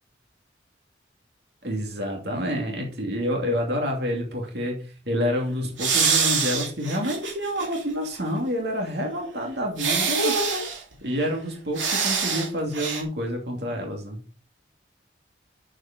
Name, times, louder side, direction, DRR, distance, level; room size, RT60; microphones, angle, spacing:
voice 1, 1.6-4.8 5.1-10.7 11.0-14.2, equal, 60° right, 1 dB, 2.6 m, -28 dB
sound 1, 5.8-7.8 8.2-8.3 9.8-10.8 11.8-12.5 12.7-13.0, right 5 dB, 85° right, 2.9 m, -24 dB
8.9 x 7.4 x 5.1 m, 0.38 s
head